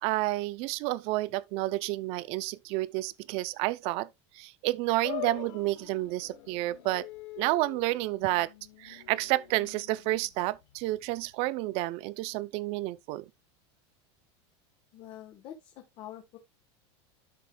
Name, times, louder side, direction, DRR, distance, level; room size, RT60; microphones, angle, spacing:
voice 1, 0.0-4.1 4.3-7.1 7.4-8.5 8.8-13.3, right 18 dB, 40° right, 0.5 m, -30 dB
sound 1, 5.0-11.5, left 18 dB, 65° left, 1.3 m, -45 dB
voice 2, 14.9-16.4, left 11 dB, 35° left, 1.2 m, -46 dB
12.0 x 5.2 x 2.2 m
supercardioid pair, 165°, 15 cm